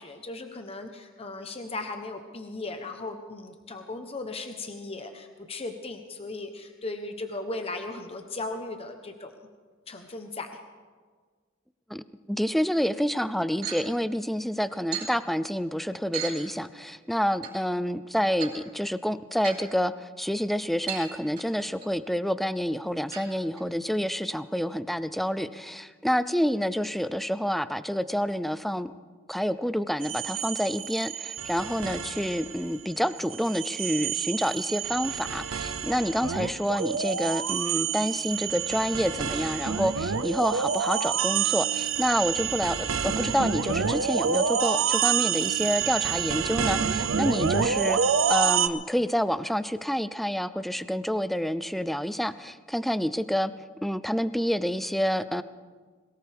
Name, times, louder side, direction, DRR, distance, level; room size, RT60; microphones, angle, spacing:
voice 1, 0.0-9.3 9.9-10.5, left 2 dB, 30° left, 6 dB, 0.9 m, -37 dB
voice 2, 11.9-28.9 29.3-48.0 48.3-53.5 53.8-55.4, equal, ahead, 14 dB, 0.4 m, -28 dB
sound 1, 13.6-13.8 14.9-15.1 16.1-16.3 17.4-17.5 18.3-18.5 19.4-19.6 20.9-21.1 21.4-21.9 23.1-23.2 23.6-23.7 24.0-24.1 24.6-24.7, right 9 dB, 50° right, 5.1 m, -35 dB
sound 2, 30.0-32.7 33.1-48.7, right 7 dB, 70° right, 0.7 m, -28 dB
22.0 x 18.5 x 3.5 m, 1.5 s
head